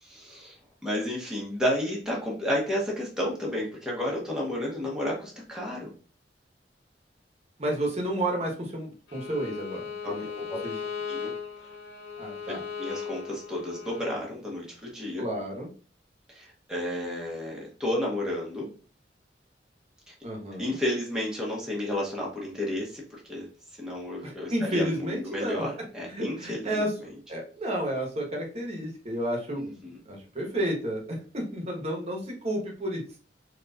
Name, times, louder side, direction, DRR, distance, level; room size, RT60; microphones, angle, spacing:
voice 1, 0.0-0.5 0.8-5.9 10.0-10.6 11.1-11.3 12.8-15.2 16.3-18.7 20.1-20.2 20.6-23.5 23.8-26.8 29.6-30.0, left 1 dB, 5° right, -4 dB, 0.9 m, -32 dB
voice 2, 7.6-10.2 10.6-10.8 12.2-12.6 15.2-15.7 20.2-20.8 24.2-26.9 27.3-33.0, right 1 dB, 35° right, 0 dB, 1.0 m, -31 dB
Bowed string instrument, 9.1-14.1, left 6 dB, 80° left, 0.8 m, -37 dB
4.0 x 3.0 x 2.3 m, 0.38 s
head